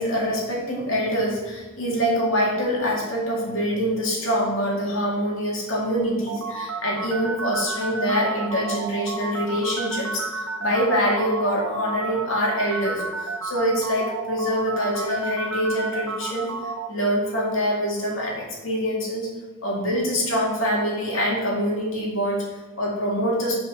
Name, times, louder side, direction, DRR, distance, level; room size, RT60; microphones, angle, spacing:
voice 1, 0.0-13.0 13.4-16.5 16.9-19.3 19.6-22.4 22.8-23.5, equal, 75° left, -2 dB, 2.3 m, -25 dB
sound 1, 6.3-16.9, right 4 dB, 85° right, 0.9 m, -31 dB
7.5 x 4.3 x 6.3 m, 1.3 s
head